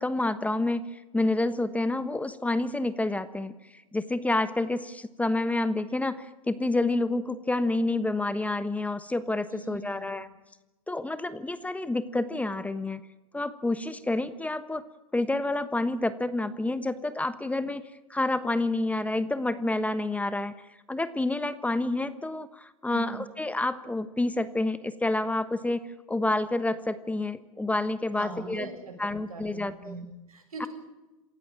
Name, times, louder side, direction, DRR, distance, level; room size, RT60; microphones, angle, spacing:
voice 1, 0.0-10.3 10.9-13.0 13.3-14.8 15.1-17.8 18.1-28.7 29.0-30.0 30.6-30.7, left 2 dB, 10° left, 13 dB, 1.2 m, -29 dB
voice 2, 9.5-10.1 22.9-23.3 28.1-30.7, right 3 dB, 90° right, 4 dB, 6.9 m, -41 dB
27.5 x 15.5 x 8.8 m, 1.0 s
hypercardioid pair, 100°, 18 cm